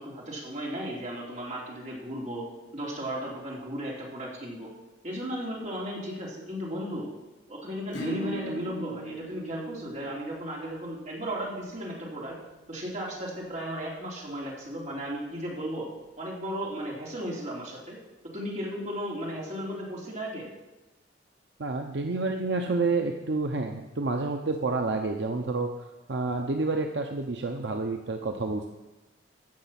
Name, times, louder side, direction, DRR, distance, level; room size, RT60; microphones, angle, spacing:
voice 1, 0.0-2.4 2.7-4.7 5.0-7.1 7.5-12.4 12.7-15.9 16.2-18.0 18.3-20.5, equal, 40° right, -3 dB, 3.3 m, -35 dB
Acoustic guitar / Strum, 7.9-13.2, right 2 dB, 80° left, 4.6 m, -41 dB
voice 2, 21.6-25.7 26.1-28.7, right 3 dB, 70° right, 4 dB, 0.7 m, -29 dB
15.0 x 6.4 x 5.9 m, 1.1 s
head